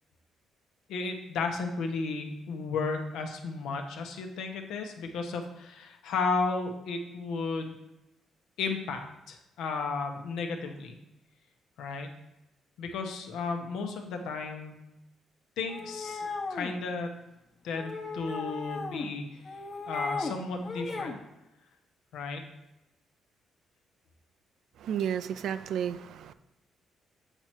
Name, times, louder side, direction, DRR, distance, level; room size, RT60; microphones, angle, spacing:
voice 1, 0.9-7.7 8.6-11.0 11.8-12.1 12.8-14.7 15.6-17.1 17.6-19.2 19.9-21.2 22.1-22.4, left 4 dB, 85° left, 4 dB, 0.9 m, -34 dB
sound 1, 15.7-16.8 17.7-19.1 19.4-20.3 20.6-21.2, left 3 dB, 40° left, 1.1 m, -36 dB
voice 2, 24.8-26.3, right 9 dB, 75° right, 12 dB, 0.4 m, -32 dB
7.8 x 4.5 x 4.5 m, 0.93 s
cardioid pair, 90°, 0 cm